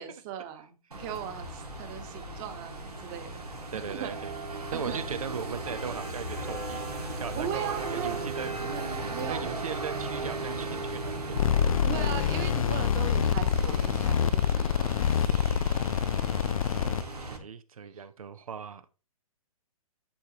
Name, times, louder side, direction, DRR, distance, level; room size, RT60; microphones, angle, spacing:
voice 1, 0.0-3.4 3.7-4.1 4.7-5.0 7.4-9.6 11.8-15.1, right 9 dB, 30° right, 1.3 m, -38 dB
sound 1, 0.9-17.4, right 2 dB, 85° right, 1.9 m, -36 dB
voice 2, 3.7-4.3 4.7-8.5 9.3-11.6 16.8-18.9, right 6 dB, 70° right, 0.8 m, -38 dB
sound 2, 11.4-17.0, left 8 dB, 65° left, 0.4 m, -26 dB
10.0 x 4.7 x 2.9 m
figure-of-eight pair, 125°, 19 cm